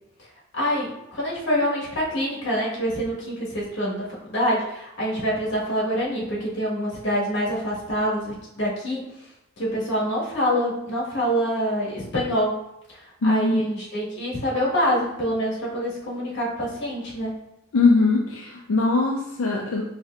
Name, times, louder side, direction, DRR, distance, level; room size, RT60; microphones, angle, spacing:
voice 1, 0.5-9.1 9.6-12.6 13.2-17.3, equal, 60° left, -5 dB, 1.3 m, -26 dB
voice 2, 13.2-13.6 17.7-19.8, left 3 dB, 85° left, -2 dB, 0.5 m, -21 dB
5.3 x 2.7 x 2.3 m, 0.86 s
head